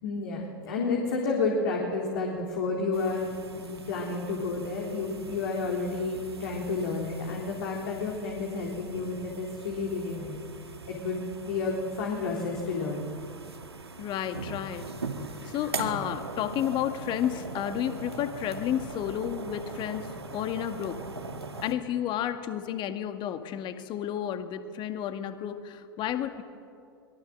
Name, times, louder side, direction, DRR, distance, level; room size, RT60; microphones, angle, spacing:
voice 1, 0.0-10.4 10.9-13.1, left 3 dB, 60° left, -1 dB, 3.7 m, -31 dB
sound 1, 2.9-21.7, right 3 dB, 85° right, 2.0 m, -41 dB
voice 2, 14.0-14.9 15.5-21.0 21.6-26.4, left 10 dB, 40° left, 8 dB, 2.0 m, -31 dB
24.5 x 21.5 x 7.7 m, 2.4 s
figure-of-eight pair, 90°, 13 cm